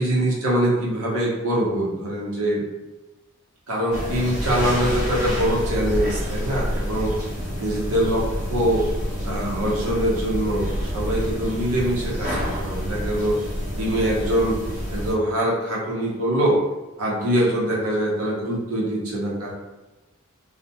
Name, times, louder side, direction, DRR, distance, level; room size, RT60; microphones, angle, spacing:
voice 1, 0.0-2.6 3.7-7.1 7.6-8.8 9.2-13.4 13.8-14.6 14.9-16.6 17.0-19.5, right 1 dB, 75° right, -4 dB, 0.8 m, -23 dB
sound 1, 3.9-15.1, equal, 35° right, 0.9 m, -28 dB
2.4 x 2.1 x 2.8 m, 1.1 s
head